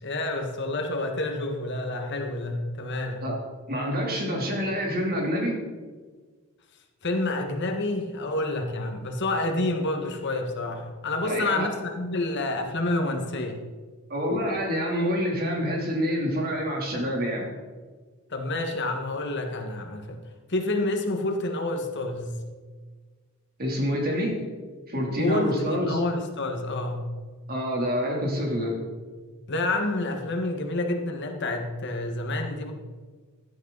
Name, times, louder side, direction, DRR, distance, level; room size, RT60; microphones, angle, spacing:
voice 1, 0.0-3.2 7.0-13.6 18.3-20.2 20.5-22.3 25.2-27.0 29.5-32.7, left 2 dB, 50° left, 4 dB, 1.6 m, -28 dB
voice 2, 3.7-5.6 11.2-11.7 14.1-17.5 23.6-24.4 24.9-26.0 27.5-28.7, equal, 45° right, -1 dB, 3.3 m, -27 dB
16.0 x 11.5 x 4.1 m, 1.4 s
head